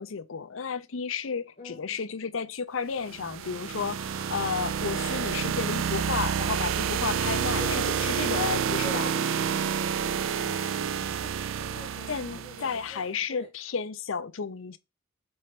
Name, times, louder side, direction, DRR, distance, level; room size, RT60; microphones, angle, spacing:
voice 1, 0.0-9.1 12.1-14.8, left 6 dB, 85° left, 0.6 m, -32 dB
voice 2, 1.6-2.0 7.6-7.9 8.8-13.5, left 2 dB, 35° left, 1.5 m, -45 dB
sound 1, 3.0-12.8, right 7 dB, 85° right, 0.4 m, -29 dB
4.5 x 4.3 x 5.0 m
head